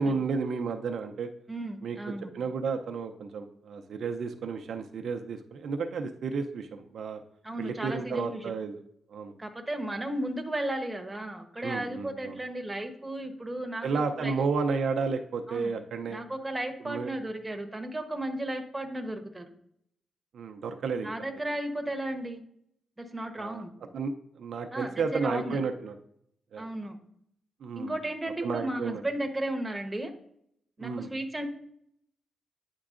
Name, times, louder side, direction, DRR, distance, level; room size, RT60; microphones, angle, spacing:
voice 1, 0.0-1.3 1.8-2.0 2.3-7.2 7.6-8.8 9.1-9.3 11.6-12.4 13.8-16.2 16.8-17.1 20.3-21.1 23.4-23.6 23.9-26.0 26.5-26.6 27.6-27.9 28.4-29.0 30.8-31.1, right 4 dB, 70° right, 5 dB, 0.5 m, -32 dB
voice 2, 1.5-2.3 7.4-8.5 9.4-14.3 15.5-15.7 16.1-19.5 21.0-22.4 23.0-23.7 24.7-25.6 26.6-27.0 27.8-30.1 30.8-31.4, right 1 dB, 15° right, 4 dB, 1.0 m, -34 dB
9.5 x 4.5 x 2.5 m, 0.71 s
cardioid pair, 80°, 0 cm